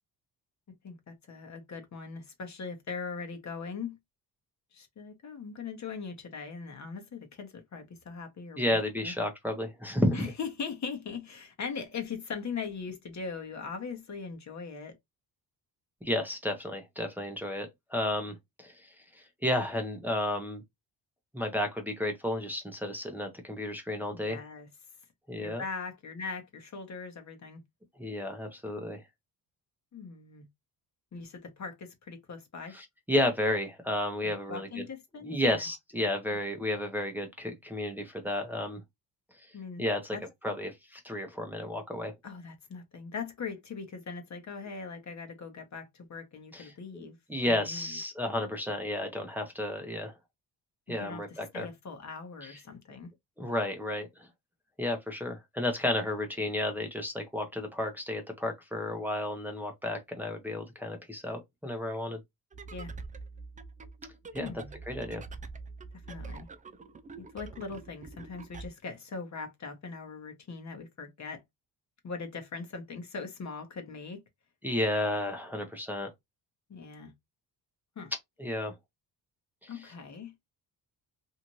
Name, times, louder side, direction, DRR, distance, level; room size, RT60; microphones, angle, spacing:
voice 1, 0.8-4.0 4.7-9.1 10.1-14.9 24.1-24.7 25.4-27.6 29.9-30.4 31.1-32.8 34.2-35.7 39.5-39.8 40.1-40.2 42.2-47.2 47.4-48.0 51.0-53.1 62.7-62.9 64.4-64.8 66.1-66.5 67.2-71.4 72.0-74.2 76.7-77.1 78.0-78.1 79.7-80.3, left 5 dB, 40° left, 1.0 m, -40 dB
voice 2, 8.6-10.2 16.0-18.9 19.1-20.6 21.3-24.4 25.3-25.6 28.0-29.0 32.7-34.7 35.2-38.8 39.8-40.2 40.4-42.1 46.5-46.7 47.3-50.1 50.9-51.7 52.4-52.6 53.4-54.3 54.8-62.2 64.3-65.2 74.6-76.1 78.4-78.7 79.6-79.7, left 1 dB, 5° right, 0.8 m, -32 dB
sound 1, 62.5-68.7, right 4 dB, 20° right, 0.4 m, -45 dB
2.7 x 2.5 x 3.0 m
cardioid pair, 85°, 41 cm